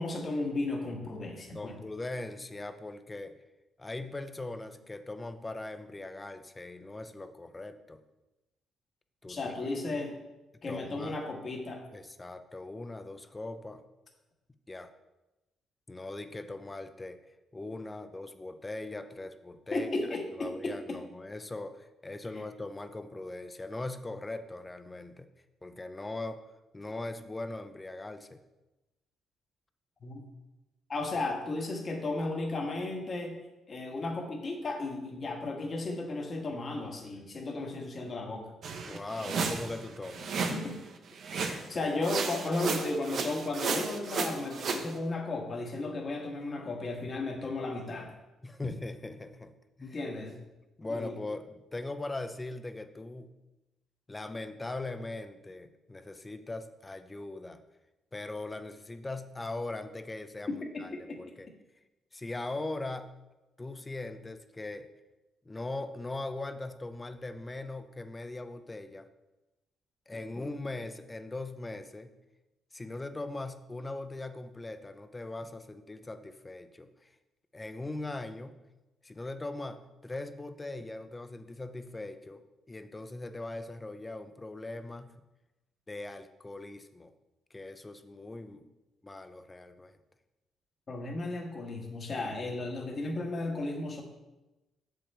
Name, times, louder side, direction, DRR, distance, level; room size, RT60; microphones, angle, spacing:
voice 1, 0.0-1.8 9.3-10.2 10.6-11.8 19.7-21.0 22.3-22.4 30.0-30.2 30.9-33.4 33.7-38.5 40.5-40.8 41.3-48.1 49.8-50.4 50.9-51.1 60.5-61.2 90.9-94.0, left 2 dB, 40° left, 1 dB, 1.5 m, -34 dB
voice 2, 1.5-3.3 3.8-8.0 9.2-9.7 10.7-11.2 11.9-13.8 14.7-14.9 15.9-17.2 17.5-19.9 20.4-25.3 25.6-26.5 26.7-28.4 38.8-40.4 48.4-49.5 49.8-50.0 50.8-53.3 54.1-57.6 58.1-61.5 62.1-63.2 63.6-64.9 65.5-69.1 70.1-72.1 72.7-77.1 77.5-78.6 79.0-85.2 85.9-87.1 87.5-88.7 89.0-90.0, left 2 dB, 20° left, 10 dB, 0.5 m, -40 dB
sound 1, 38.6-40.7 41.2-41.7 42.0-44.9, right 5 dB, 60° right, 0.8 m, -33 dB
7.0 x 5.5 x 4.3 m, 1.0 s
cardioid pair, 90°, 0 cm